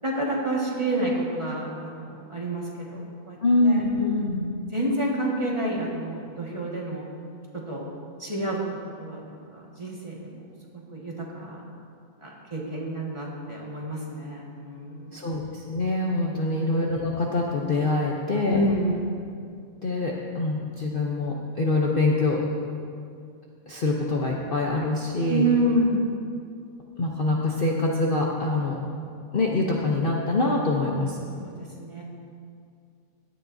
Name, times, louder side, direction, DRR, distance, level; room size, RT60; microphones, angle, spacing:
voice 1, 0.0-3.4 3.6-4.1 4.7-7.1 7.5-7.8 8.2-8.6 9.0-10.5 10.9-11.6 12.2-15.2 16.5-16.6 18.5-19.1 25.3-26.1 31.4-32.0, right 1 dB, 20° right, -4 dB, 1.6 m, -29 dB
voice 2, 3.4-4.5 15.1-18.7 19.8-22.4 23.7-25.4 27.0-28.8 29.3-31.2, left 2 dB, 45° left, -2 dB, 0.9 m, -25 dB
16.5 x 11.0 x 2.7 m, 2.3 s
omnidirectional pair, 1.6 m